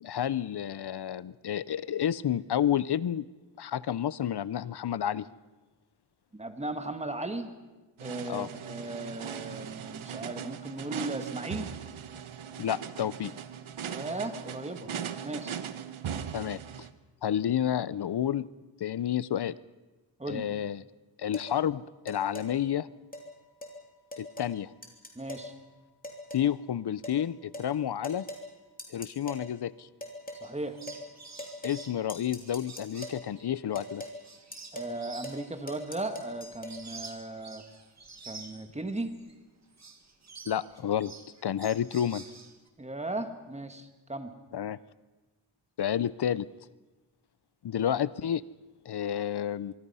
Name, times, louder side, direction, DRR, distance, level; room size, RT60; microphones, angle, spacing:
voice 1, 0.0-3.3 3.6-5.3 8.3-8.5 12.6-13.3 16.3-16.6 17.2-18.5 18.8-19.6 20.3-20.8 21.2-22.9 24.2-24.7 26.3-28.2 28.9-29.9 31.6-34.0 40.5-41.1 41.4-42.2 44.5-44.8 45.8-46.5 47.6-48.4 48.9-49.7, left 10 dB, 55° left, 19 dB, 0.6 m, -30 dB
voice 2, 6.3-7.5 8.0-11.7 13.9-14.9 15.2-15.5 20.2-20.4 25.1-25.5 30.4-30.8 34.7-37.6 38.3-39.1 42.8-44.3, right 2 dB, 15° right, 7 dB, 1.5 m, -36 dB
sound 1, 8.0-16.9, right 8 dB, 85° right, 1.2 m, -39 dB
sound 2, 21.3-21.5 22.1-22.5 23.1-23.3 23.6-23.8 24.1-24.6 24.8-25.5 26.0-26.5 27.0-27.2 27.5-27.7 28.0-28.5 28.8-29.5 30.0-30.5 30.9-31.1 31.4-33.2 33.8-34.2 34.5-35.0 35.2-35.4 35.7-36.8, left 1 dB, 15° left, 3.1 m, -41 dB
sound 3, 30.4-39.4 39.7-42.7, right 4 dB, 35° right, 1.8 m, -49 dB
24.5 x 24.0 x 5.6 m, 1.2 s
wide cardioid pair, 170°, 48 cm